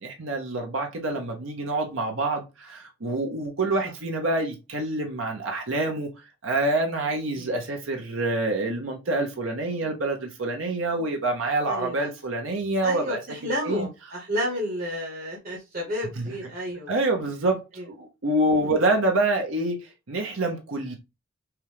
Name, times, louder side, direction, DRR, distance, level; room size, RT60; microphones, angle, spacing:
voice 1, 0.0-6.1 6.4-13.9 16.2-16.4 16.9-17.6 17.8-20.9, right 2 dB, 90° right, 1.0 m, -27 dB
voice 2, 11.6-12.1 12.8-16.9 17.8-17.9 18.6-18.7, equal, 50° right, 1.3 m, -31 dB
6.0 x 2.5 x 3.5 m
head